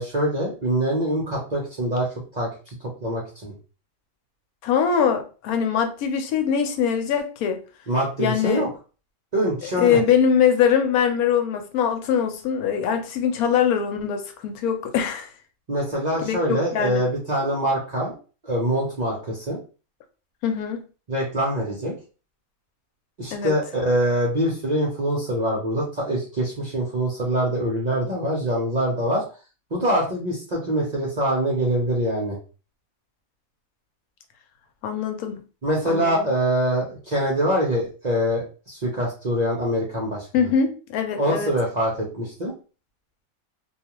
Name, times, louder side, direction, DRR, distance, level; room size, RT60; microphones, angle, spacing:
voice 1, 0.0-2.1 2.3-3.5 7.9-8.7 9.3-10.0 15.7-18.1 18.4-19.6 21.1-21.9 23.2-29.2 29.7-32.4 35.6-40.5 41.2-42.5, right 1 dB, 50° right, 0.5 m, -24 dB
voice 2, 4.6-7.6 8.2-8.7 9.6-15.3 16.2-17.0 20.4-20.8 23.3-23.5 34.8-35.4 35.9-36.3 40.3-41.5, left 7 dB, 90° left, 1.1 m, -22 dB
2.3 x 2.3 x 2.9 m
omnidirectional pair, 1.5 m